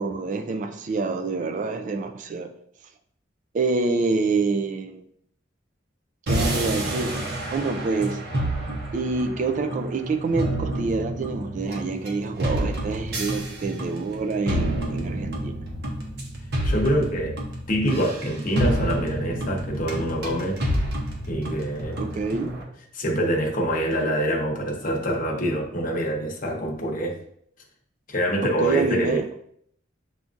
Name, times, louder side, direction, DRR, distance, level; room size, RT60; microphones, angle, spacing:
voice 1, 0.0-2.5 3.5-5.0 6.3-8.3 8.9-15.6 22.0-22.6 28.4-29.3, right 4 dB, 40° right, 7 dB, 0.3 m, -27 dB
sound 1, 6.3-22.6, right 1 dB, 60° right, 0.9 m, -29 dB
voice 2, 16.6-17.4 17.7-20.6 21.3-22.0 22.9-27.2 28.1-29.2, equal, 45° left, 0 dB, 0.9 m, -25 dB
6.9 x 2.5 x 2.5 m, 0.67 s
head